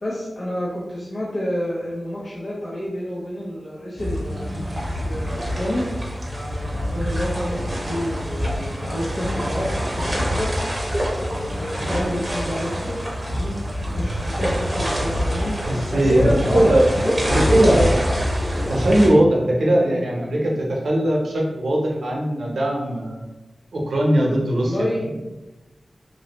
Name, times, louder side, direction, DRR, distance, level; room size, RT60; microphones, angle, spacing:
voice 1, 0.0-4.5 5.0-5.9 6.3-10.5 11.2-13.0 13.2-13.5 13.9-15.5 15.9-18.0 18.6-18.7 24.6-25.1, equal, 55° left, -6 dB, 0.6 m, -29 dB
sound 1, 4.0-19.1, equal, 25° right, 0.8 m, -25 dB
voice 2, 15.7-16.9 17.3-18.0 18.7-23.3 23.7-24.9, right 1 dB, 85° right, -2 dB, 0.7 m, -19 dB
3.1 x 2.5 x 2.9 m, 1.1 s
wide cardioid pair, 110°, 0 cm